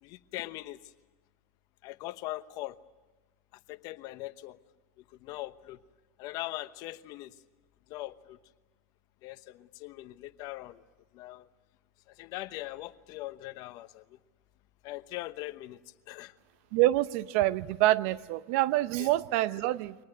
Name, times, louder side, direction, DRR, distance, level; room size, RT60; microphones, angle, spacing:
voice 1, 0.0-0.9 1.8-2.8 3.7-4.6 5.0-5.8 6.2-7.3 7.9-8.4 9.2-10.8 11.1-11.5 12.1-14.2 14.8-15.8 16.1-16.3 19.0-19.1, left 17 dB, 50° left, 13 dB, 1.0 m, -41 dB
voice 2, 16.7-20.0, right 16 dB, 60° right, 15 dB, 0.8 m, -26 dB
24.0 x 19.0 x 9.4 m, 1.2 s
hypercardioid pair, 115°, 8 cm